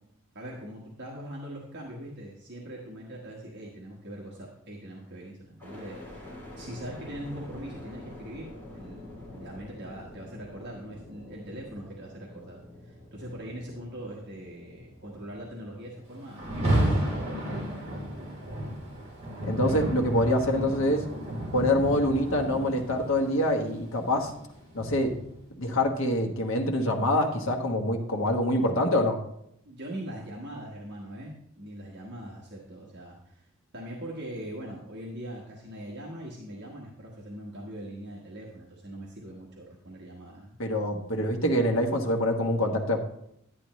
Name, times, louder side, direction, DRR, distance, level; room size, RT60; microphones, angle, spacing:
voice 1, 0.3-6.3 6.6-8.5 8.7-17.7 29.6-33.5 33.7-40.6, right 1 dB, 50° right, -3 dB, 1.4 m, -41 dB
sound 1, 5.6-19.6 20.1-20.8, left 1 dB, 10° left, 3.2 m, -48 dB
Rain, 16.3-25.4, right 1 dB, 30° right, 3.5 m, -32 dB
voice 2, 19.5-21.0 21.5-24.3 24.7-25.1 25.6-29.2 40.6-43.0, left 1 dB, 65° left, 1 dB, 1.2 m, -25 dB
10.5 x 9.8 x 3.1 m, 0.76 s
head